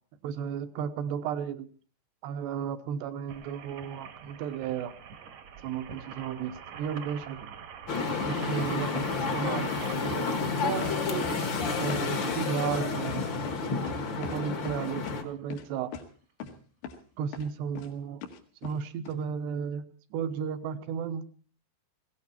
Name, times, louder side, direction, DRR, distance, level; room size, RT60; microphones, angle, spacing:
voice 1, 0.2-1.7 2.2-4.9 5.6-7.6 8.2-11.3 11.8-13.3 14.2-15.9 17.2-18.2 18.6-19.8 20.1-21.2, right 8 dB, 80° right, 10 dB, 3.1 m, -34 dB
sound 1, 3.3-14.4 15.0-15.1 15.3-15.4, right 7 dB, 60° right, 1.8 m, -46 dB
sound 2, 7.9-15.2, left 4 dB, 50° left, 1.4 m, -30 dB
sound 3, 8.2-9.4 9.7-10.5 10.8-14.4 14.7-15.2 15.5-15.7 15.9-16.0 16.4-16.6 16.8-17.0 17.3-17.9 18.2-18.8 19.1-19.2, left 7 dB, 85° left, 3.9 m, -41 dB
18.5 x 17.0 x 4.3 m, 0.42 s
omnidirectional pair, 4.9 m